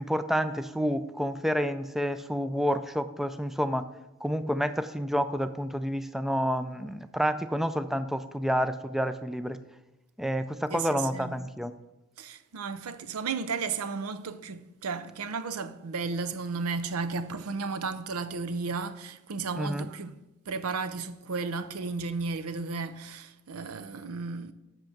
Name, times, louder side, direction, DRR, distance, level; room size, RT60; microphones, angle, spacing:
voice 1, 0.0-3.9 4.2-9.6 10.2-11.7 19.6-19.9, equal, ahead, 0.4 m, -29 dB
voice 2, 10.7-11.4 12.2-20.1 20.5-24.5, right 4 dB, 80° right, 0.6 m, -34 dB
7.8 x 6.0 x 5.8 m
head